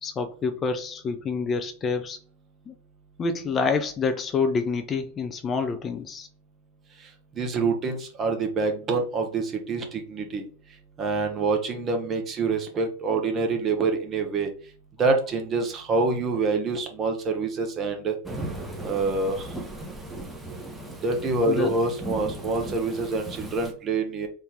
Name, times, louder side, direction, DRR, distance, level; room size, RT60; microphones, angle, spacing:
voice 1, 0.0-2.2 2.7-2.8 3.2-6.3 21.5-21.7, left 4 dB, 25° left, 0.4 m, -27 dB
voice 2, 7.4-10.4 11.0-14.5 15.0-18.2 18.8-19.5 21.0-24.3, right 3 dB, 30° right, 1.0 m, -26 dB
Thunderstorm / Rain, 18.2-23.7, right 1 dB, 5° right, 0.9 m, -37 dB
3.5 x 2.7 x 3.4 m
figure-of-eight pair, 90°, 0 cm